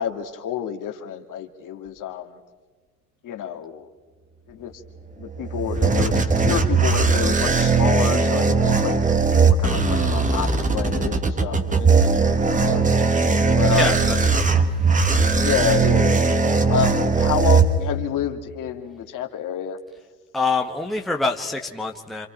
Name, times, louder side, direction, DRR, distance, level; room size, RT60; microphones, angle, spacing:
voice 1, 0.0-2.4 3.2-3.9 4.5-4.8 5.2-9.0 9.3-12.3 12.6-12.9 13.6-14.2 15.4-16.2 16.7-19.8, left 10 dB, 40° left, 6 dB, 2.1 m, -29 dB
sound 1, 5.2-18.2, right 4 dB, 15° right, 1.6 m, -19 dB
voice 2, 13.7-14.8 20.3-22.3, left 3 dB, ahead, 2 dB, 1.2 m, -26 dB
28.0 x 27.0 x 4.5 m, 1.4 s
hypercardioid pair, 80°, 48 cm